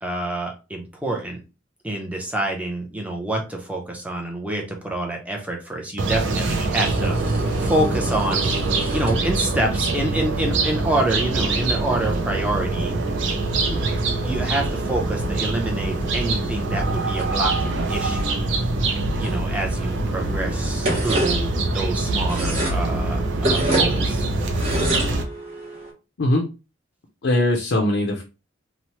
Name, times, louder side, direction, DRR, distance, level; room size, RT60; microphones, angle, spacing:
voice 1, 0.0-1.4 1.8-7.3 7.6-8.6 8.9-12.9 13.7-13.8 14.2-18.4 19.2-24.2, right 1 dB, 5° right, 0 dB, 0.5 m, -27 dB
sound 1, 6.0-25.2, right 2 dB, 65° right, 0.5 m, -24 dB
sound 2, 6.7-25.9, right 1 dB, 30° right, 0.8 m, -32 dB
voice 2, 27.2-28.2, left 1 dB, 65° left, 1 dB, 0.5 m, -20 dB
2.8 x 2.0 x 2.9 m, 0.30 s
head